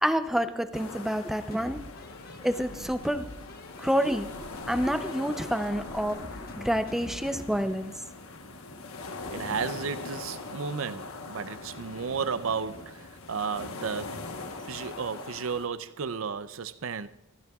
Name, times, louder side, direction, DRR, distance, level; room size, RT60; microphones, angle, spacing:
voice 1, 0.0-1.8 2.4-3.3 3.8-4.3 4.7-6.2 6.6-7.9, equal, ahead, 0.5 m, -28 dB
sound 1, 0.7-15.7, left 3 dB, 85° left, 1.1 m, -41 dB
sound 2, 1.5-7.7, left 1 dB, 45° left, 1.2 m, -46 dB
voice 2, 9.3-14.2 14.6-17.1, right 6 dB, 70° right, 0.5 m, -33 dB
21.0 x 15.0 x 2.4 m
head